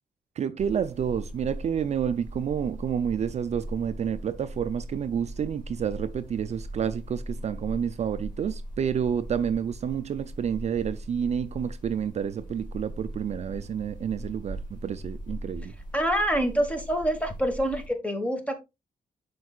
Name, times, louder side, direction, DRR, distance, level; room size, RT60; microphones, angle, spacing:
voice 1, 0.4-15.7, right 8 dB, 45° right, 0.4 m, -29 dB
sound 1, 0.6-17.9, equal, 30° left, 3.3 m, -40 dB
voice 2, 15.9-18.5, equal, 10° left, 1.4 m, -26 dB
10.5 x 4.6 x 2.4 m
wide cardioid pair, 145°, 15 cm